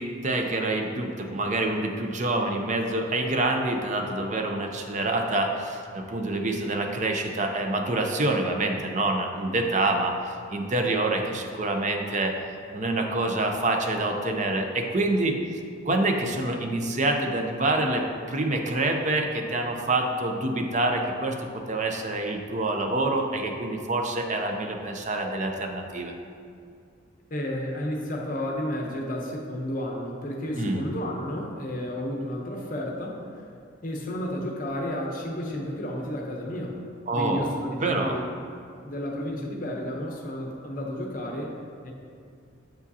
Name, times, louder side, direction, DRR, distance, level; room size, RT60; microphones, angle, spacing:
voice 1, 0.0-12.4 12.7-15.4 15.8-26.1 30.6-30.8 37.1-38.2, right 2 dB, 35° right, 3 dB, 0.5 m, -26 dB
voice 2, 27.3-33.4 33.8-36.8 37.1-38.3 38.8-41.6 41.8-41.9, left 1 dB, 40° left, 0 dB, 0.7 m, -32 dB
7.6 x 4.9 x 2.7 m, 2.4 s
head